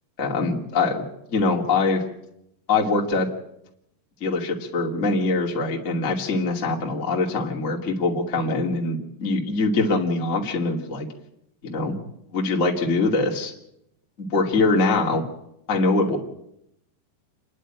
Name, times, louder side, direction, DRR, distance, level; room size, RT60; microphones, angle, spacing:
voice 1, 0.2-2.0 2.7-3.3 4.2-11.1 11.6-12.0 12.3-13.5 14.2-15.2 15.7-16.2, left 3 dB, 25° left, 0 dB, 2.0 m, -23 dB
28.5 x 11.0 x 8.9 m, 0.79 s
omnidirectional pair, 5.1 m